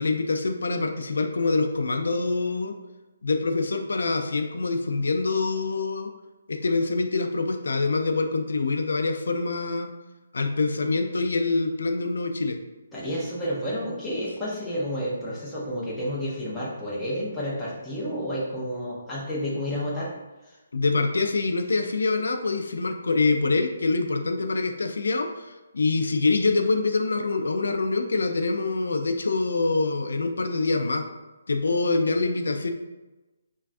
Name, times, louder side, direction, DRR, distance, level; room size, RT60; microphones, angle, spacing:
voice 1, 0.0-2.7 3.2-6.1 6.5-9.9 10.3-12.6 20.7-31.1 31.5-32.7, left 3 dB, 80° left, 5 dB, 0.3 m, -25 dB
voice 2, 12.9-20.1 20.4-20.6, equal, 5° left, -8 dB, 0.5 m, -30 dB
3.2 x 2.2 x 2.5 m, 1.1 s
hypercardioid pair, 170°, 0 cm